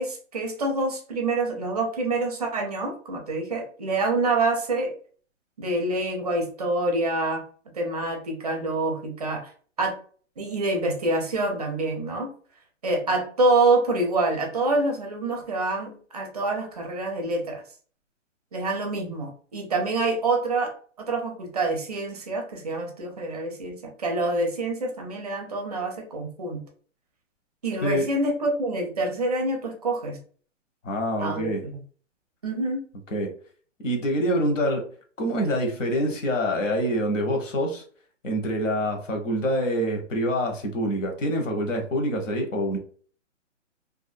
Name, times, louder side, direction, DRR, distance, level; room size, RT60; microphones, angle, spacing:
voice 1, 0.0-4.9 5.6-7.4 7.7-9.5 9.8-9.9 10.4-12.3 12.8-17.6 18.5-26.6 27.6-30.2 31.2-31.8 32.4-32.9, right 2 dB, 30° right, 0.5 m, -26 dB
voice 2, 27.8-28.1 30.8-31.7 33.1-33.3 33.8-34.9 35.2-37.8 38.2-42.8, equal, 80° left, 1.1 m, -26 dB
2.6 x 2.4 x 2.5 m
hypercardioid pair, 165°, 38 cm